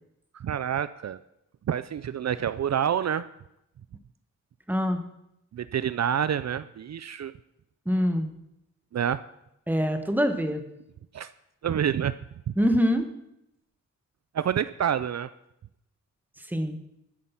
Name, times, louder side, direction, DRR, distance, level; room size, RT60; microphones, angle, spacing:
voice 1, 0.3-1.2 1.7-3.3 5.5-7.3 8.9-9.2 11.1-11.3 11.6-12.1 12.5-12.6 14.3-15.3, right 9 dB, 60° right, 15 dB, 0.5 m, -27 dB
voice 2, 4.7-5.0 7.9-8.3 9.7-10.6 12.6-13.1 16.5-16.8, equal, 5° right, 7 dB, 1.3 m, -24 dB
13.5 x 9.8 x 5.9 m, 0.83 s
wide cardioid pair, 125°, 31 cm